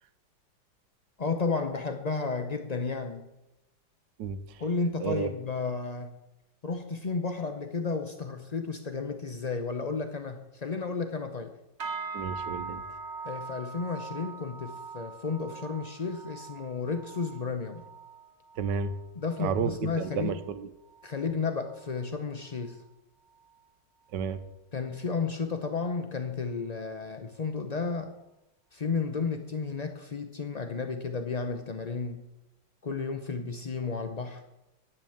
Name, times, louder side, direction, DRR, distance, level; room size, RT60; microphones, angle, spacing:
voice 1, 1.2-3.3 4.6-6.1 6.6-11.5 13.2-17.8 19.2-20.3 21.0-22.8 24.7-28.1 28.7-32.2 32.8-34.4, left 4 dB, 70° left, 7 dB, 0.3 m, -32 dB
voice 2, 4.2-4.6 5.0-5.3 12.1-12.8 18.6-18.9 19.4-20.7 24.1-24.4, right 6 dB, 75° right, 12 dB, 1.5 m, -31 dB
sound 1, 11.8-21.3 21.6-22.1 22.5-22.8 23.4-23.5, right 4 dB, 40° right, 1.4 m, -42 dB
10.5 x 8.2 x 7.1 m, 0.93 s
omnidirectional pair, 2.0 m